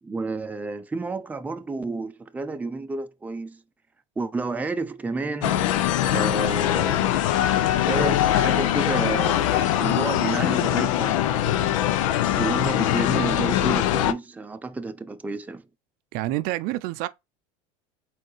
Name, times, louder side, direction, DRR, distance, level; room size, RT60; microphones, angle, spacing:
voice 1, 0.0-3.6 4.2-5.7 6.1-11.8 12.4-15.7, right 3 dB, 10° right, 0.5 m, -31 dB
sound 1, 5.4-14.1, left 12 dB, 85° left, 0.5 m, -22 dB
voice 2, 16.1-17.1, right 17 dB, 60° right, 0.5 m, -27 dB
4.4 x 3.8 x 3.1 m
supercardioid pair, 105°, 16 cm